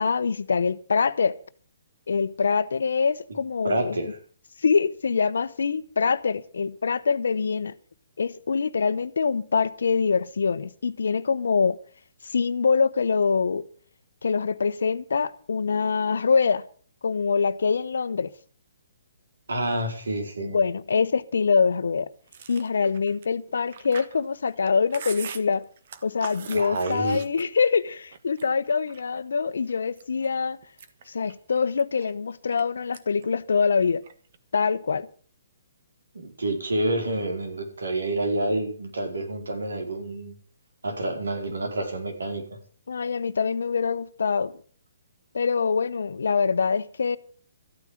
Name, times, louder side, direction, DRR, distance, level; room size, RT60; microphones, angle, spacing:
voice 1, 0.0-1.4 2.1-4.0 4.6-7.7 8.2-11.8 12.2-13.6 14.2-16.6 17.0-18.3 20.4-22.1 22.5-25.6 26.0-30.6 31.1-34.0 34.5-35.1 42.9-44.5 45.3-47.2, left 5 dB, 75° left, 0.9 m, -24 dB
voice 2, 3.6-4.1 19.5-20.6 26.5-27.2 36.1-40.3 40.8-42.4, right 1 dB, 80° right, 4.6 m, -28 dB
Chewing mastication, 22.3-27.8 28.1-29.2 29.7-30.3 30.6-32.6 32.9-33.3 33.5-34.4, right 7 dB, 55° right, 1.5 m, -42 dB
14.0 x 9.3 x 7.4 m
hypercardioid pair, 140°, 0 cm